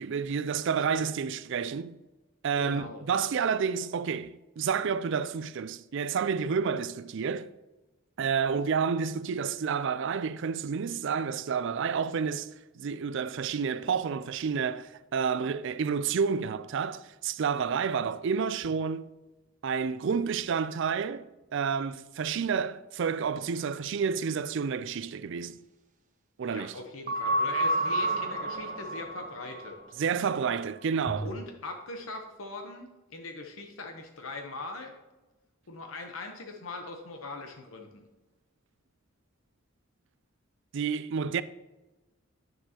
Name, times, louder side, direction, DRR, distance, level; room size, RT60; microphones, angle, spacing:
voice 1, 0.0-2.0 2.4-7.5 8.2-12.5 12.8-19.1 19.6-21.3 21.5-25.6 26.4-26.8 30.0-31.3 40.7-41.4, right 6 dB, 65° right, 0.4 m, -30 dB
voice 2, 2.6-3.0 26.4-29.8 31.2-34.9 35.7-38.0, left 3 dB, 85° left, 0.9 m, -41 dB
sound 1, 27.1-29.7 31.1-31.3, right 1 dB, 40° right, 0.8 m, -30 dB
9.4 x 6.8 x 2.9 m
head